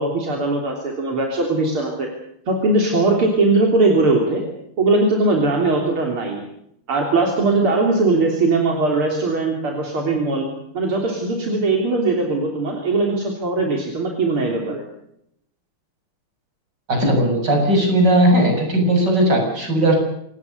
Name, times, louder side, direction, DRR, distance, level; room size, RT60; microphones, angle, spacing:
voice 1, 0.0-2.1 2.5-4.4 4.8-6.4 6.9-10.5 10.7-14.8, right 3 dB, 75° right, 1 dB, 4.3 m, -20 dB
voice 2, 16.9-20.0, right 1 dB, 50° right, 2 dB, 7.7 m, -17 dB
27.0 x 19.0 x 6.8 m, 0.74 s
omnidirectional pair, 2.4 m